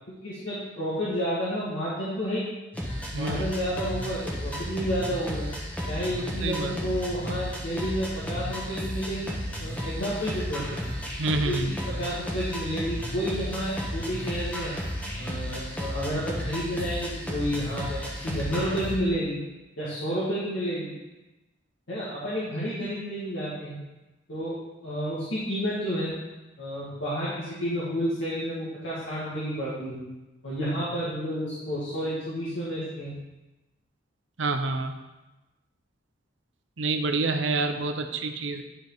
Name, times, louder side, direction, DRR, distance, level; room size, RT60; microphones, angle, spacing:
voice 1, 0.1-2.5 3.1-5.5 5.9-10.7 11.4-14.8 15.2-19.4 19.8-20.9 21.9-23.8 24.3-24.5 24.8-26.1 26.6-30.0 30.4-33.1, equal, 80° left, -10 dB, 2.1 m, -30 dB
sound 1, 2.7-19.0, equal, 10° left, 1.2 m, -33 dB
voice 2, 3.1-3.5 6.2-6.7 11.2-11.7 34.4-34.9 36.8-38.6, right 3 dB, 80° right, 6 dB, 0.8 m, -28 dB
11.0 x 5.1 x 4.0 m, 1.1 s
head